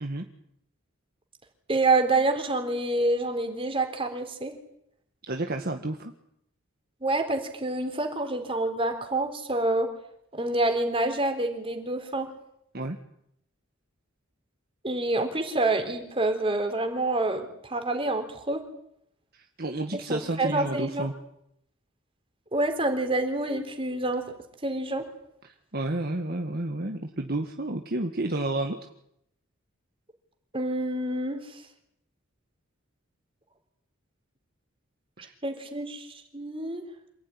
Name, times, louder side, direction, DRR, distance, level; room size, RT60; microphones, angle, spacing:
voice 1, 1.7-4.5 7.0-9.9 10.3-12.3 14.8-18.6 20.1-21.1 22.5-24.3 24.6-25.0 30.5-31.6 35.4-36.8, right 2 dB, 25° right, 5 dB, 3.9 m, -27 dB
voice 2, 5.3-6.1 12.7-13.0 19.6-21.1 25.4-28.8 35.2-35.3, right 2 dB, 50° right, 4 dB, 1.7 m, -31 dB
27.5 x 16.0 x 9.9 m, 0.77 s
head